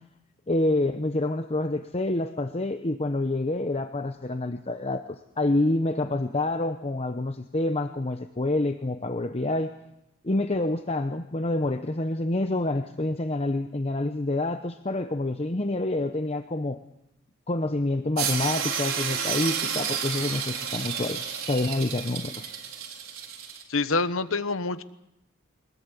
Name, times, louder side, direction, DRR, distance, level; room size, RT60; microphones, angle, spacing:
voice 1, 0.5-9.7 10.2-16.8 17.5-22.5, left 2 dB, 30° left, 8 dB, 0.8 m, -27 dB
sound 1, 18.2-23.6, right 7 dB, 85° right, 4.2 m, -31 dB
voice 2, 23.7-24.8, left 3 dB, 80° left, 13 dB, 1.1 m, -26 dB
22.5 x 21.0 x 8.3 m, 0.83 s
head